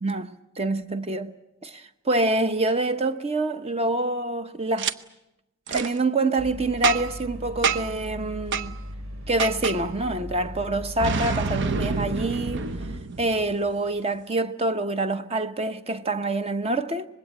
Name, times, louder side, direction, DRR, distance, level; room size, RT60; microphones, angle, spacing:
voice 1, 0.0-1.3 1.6-4.9 5.7-8.8 9.3-12.7 13.2-17.1, right 2 dB, 30° right, 1.0 m, -26 dB
Boom, 4.8-4.9 5.7-5.9 6.8-7.2 7.6-8.0 8.5-8.7 9.4-9.8 11.0-13.7, right 5 dB, 60° right, 0.8 m, -27 dB
sound 1, 6.4-13.0, equal, 75° right, 2.5 m, -38 dB
25.0 x 20.5 x 8.8 m
head